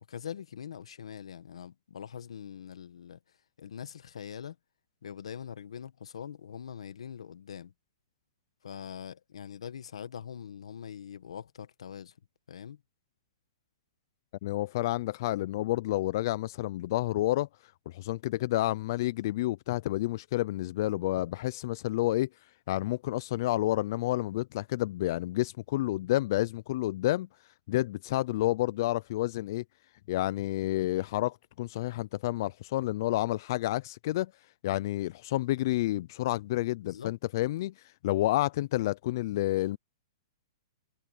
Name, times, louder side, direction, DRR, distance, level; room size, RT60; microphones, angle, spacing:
voice 1, 0.0-3.2 3.6-4.6 5.0-7.7 8.6-12.2 12.5-12.8 36.8-37.2, left 8 dB, 85° left, 1.5 m, -43 dB
voice 2, 14.4-22.3 22.7-27.3 27.7-29.6 30.1-34.3 34.6-39.8, left 16 dB, 40° left, 0.3 m, -30 dB
hypercardioid pair, 165°, 3 cm